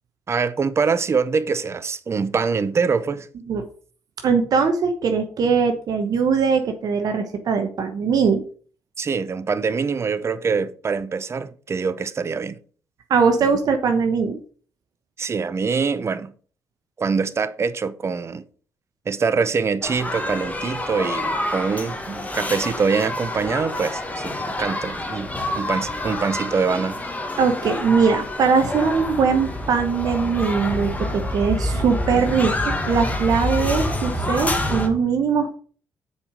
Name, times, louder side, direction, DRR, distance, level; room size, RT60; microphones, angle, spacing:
voice 1, 0.3-3.3 9.0-12.6 15.2-16.3 17.0-18.4 19.1-25.3 25.6-27.0, right 5 dB, 40° right, 0.7 m, -24 dB
voice 2, 4.2-8.4 13.1-14.4 27.4-35.5, right 5 dB, 65° right, 1.0 m, -21 dB
sound 1, 19.8-34.9, left 1 dB, 20° left, 1.7 m, -27 dB
6.9 x 4.9 x 5.1 m
supercardioid pair, 65°, 7 cm